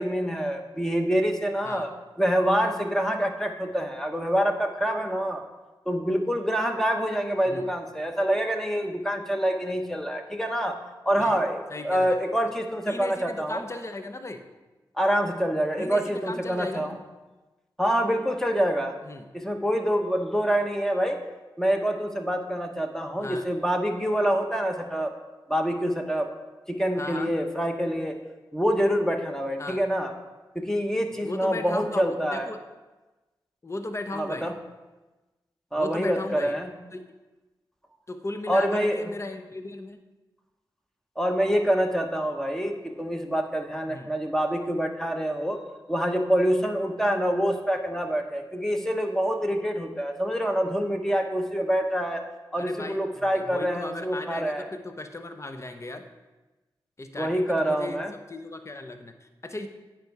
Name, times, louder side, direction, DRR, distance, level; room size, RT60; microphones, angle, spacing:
voice 1, 0.0-1.9 2.2-5.4 5.9-10.8 11.0-13.6 15.0-17.0 17.8-19.0 19.3-21.2 21.6-25.1 25.5-26.3 26.7-28.2 28.5-30.1 30.5-32.5 34.1-34.5 35.7-36.7 38.5-39.1 41.2-45.6 45.9-52.2 52.5-54.7 57.2-58.1, equal, 5° left, 4 dB, 1.0 m, -26 dB
voice 2, 11.7-12.1 12.9-14.4 15.8-16.9 19.0-19.3 23.2-23.5 27.0-27.3 29.6-29.8 31.2-32.6 33.6-34.6 35.8-36.6 36.9-37.1 38.1-40.0 43.9-44.1 52.6-56.1 57.0-59.7, left 2 dB, 35° left, 7 dB, 0.7 m, -36 dB
9.2 x 4.7 x 4.6 m, 1.1 s
cardioid pair, 40°, 9 cm